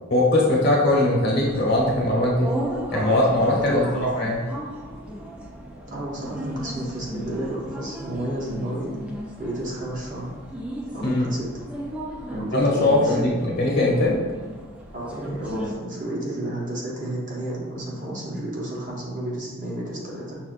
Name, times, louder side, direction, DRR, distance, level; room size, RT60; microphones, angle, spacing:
voice 1, 0.1-2.5 2.9-4.4 11.0-11.3 12.5-14.2, left 1 dB, 45° left, -4 dB, 0.9 m, -20 dB
sound 1, 1.4-15.7, equal, 5° right, 0.3 m, -35 dB
voice 2, 3.6-4.0 5.9-8.9 9.4-10.3 10.9-11.5 12.3-13.5 14.9-20.4, right 1 dB, 35° right, -4 dB, 0.8 m, -31 dB
5.8 x 2.3 x 2.5 m, 1.3 s
head